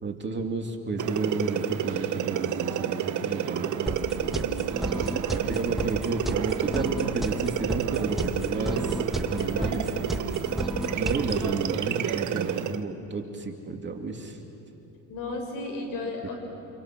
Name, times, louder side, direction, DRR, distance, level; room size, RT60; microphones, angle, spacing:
voice 1, 0.0-4.2 4.9-9.9 10.9-14.4, right 3 dB, 30° right, 2 dB, 3.0 m, -32 dB
sound 1, 1.0-12.8, right 10 dB, 50° right, 1.2 m, -30 dB
sound 2, 3.9-11.5, equal, ahead, 1.6 m, -33 dB
voice 2, 9.4-10.5 15.1-16.3, left 2 dB, 65° left, 2 dB, 7.4 m, -35 dB
29.0 x 28.5 x 6.2 m, 2.9 s
supercardioid pair, 85°, 37 cm